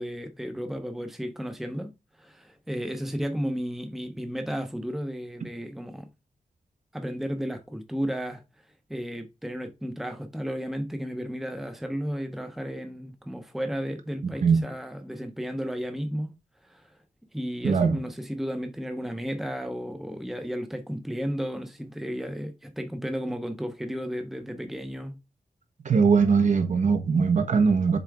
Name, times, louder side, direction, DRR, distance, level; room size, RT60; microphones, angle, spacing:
voice 1, 0.0-1.9 2.2-6.1 6.9-8.4 8.9-16.3 16.6-16.9 17.3-25.2, equal, ahead, 0.8 m, -33 dB
voice 2, 14.2-14.6 17.6-18.0 25.8-28.0, right 5 dB, 60° right, 1.3 m, -21 dB
7.0 x 4.4 x 3.5 m
wide cardioid pair, 155°, 14 cm